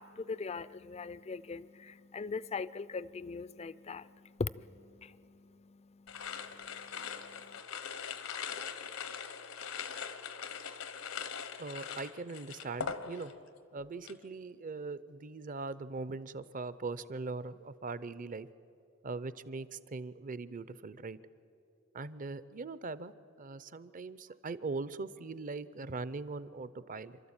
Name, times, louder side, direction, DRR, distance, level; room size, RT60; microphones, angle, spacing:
voice 1, 0.0-7.6, left 4 dB, 30° left, 0.4 m, -42 dB
sound 1, 6.1-13.5 13.8-14.2, left 6 dB, 85° left, 1.1 m, -41 dB
voice 2, 11.6-13.3 13.7-18.5 19.0-21.2 21.9-23.1 23.4-27.2, right 3 dB, 40° right, 0.6 m, -41 dB
27.5 x 13.0 x 8.8 m
head